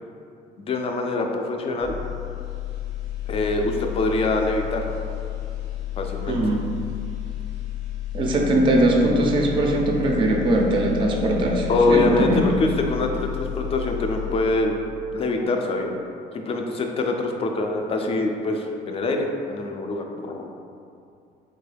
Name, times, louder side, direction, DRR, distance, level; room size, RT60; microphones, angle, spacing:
voice 1, 0.6-1.9 3.3-4.8 6.0-6.4 11.7-14.8 15.1-15.9 16.3-20.4, left 2 dB, 35° left, 3 dB, 0.4 m, -24 dB
sound 1, 1.8-14.9 15.2-15.5, left 13 dB, 85° left, 0.8 m, -32 dB
voice 2, 6.3-6.6 8.1-12.4, right 1 dB, 30° right, 0 dB, 0.4 m, -21 dB
3.6 x 2.3 x 3.2 m, 2.5 s
cardioid pair, 110°, 17 cm